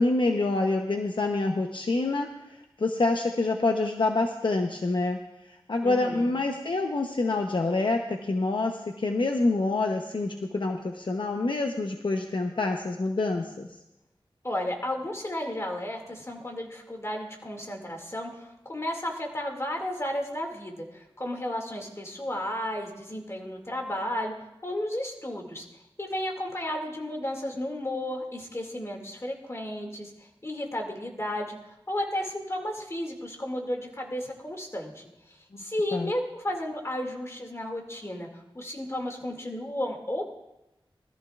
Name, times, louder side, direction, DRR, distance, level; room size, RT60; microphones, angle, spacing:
voice 1, 0.0-5.2 5.7-13.7 35.9-36.1, left 2 dB, 60° left, 3 dB, 0.8 m, -27 dB
voice 2, 5.8-6.4 14.4-24.3 24.6-25.7 26.0-31.6 31.9-40.3, left 1 dB, 30° left, 2 dB, 2.2 m, -33 dB
20.5 x 13.5 x 2.4 m, 0.90 s
wide cardioid pair, 70°, 9 cm